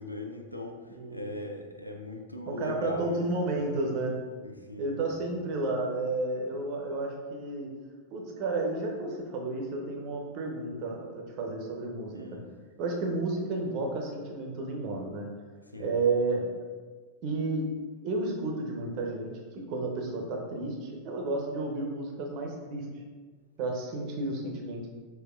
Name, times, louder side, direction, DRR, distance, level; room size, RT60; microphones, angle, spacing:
voice 1, 0.0-3.6 4.3-5.1 12.1-12.5 15.7-15.9, left 1 dB, 85° left, 3 dB, 0.4 m, -40 dB
voice 2, 0.9-1.3 2.5-4.1 4.8-7.7 8.1-12.2 12.8-15.3 15.8-16.5 17.2-17.7 18.0-22.8 23.6-24.9, right 2 dB, 40° right, 1 dB, 0.8 m, -32 dB
5.9 x 2.7 x 2.4 m, 1.5 s
figure-of-eight pair, 90°, 0 cm